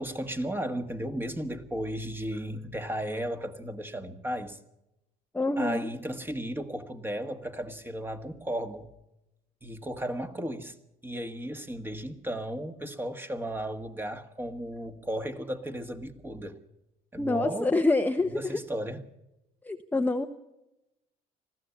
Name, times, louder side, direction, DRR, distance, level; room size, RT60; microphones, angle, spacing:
voice 1, 0.0-4.6 5.6-8.9 9.6-10.8 11.0-16.6 17.1-17.7 18.2-19.1, right 1 dB, 10° right, 1.7 m, -35 dB
voice 2, 5.3-5.9 17.2-18.6 19.6-20.3, left 2 dB, 10° left, 0.9 m, -26 dB
20.5 x 15.0 x 8.5 m
cardioid pair, 110°, 17 cm